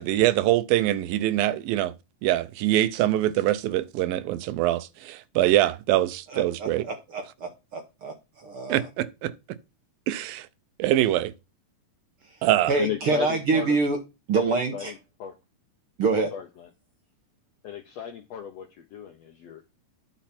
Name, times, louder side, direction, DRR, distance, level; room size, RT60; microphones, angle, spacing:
voice 1, 0.0-1.9 2.2-6.8 8.7-9.3 10.1-10.5 10.8-11.3 12.4-12.7, right 14 dB, 85° right, 2.5 m, -24 dB
voice 2, 6.3-8.9 12.3-14.0 14.3-14.9 16.0-16.3, right 4 dB, 65° right, 1.3 m, -26 dB
voice 3, 12.8-13.8 14.7-15.3 16.3-16.7 17.6-19.6, left 8 dB, 80° left, 1.5 m, -34 dB
10.0 x 7.0 x 4.2 m
omnidirectional pair, 4.0 m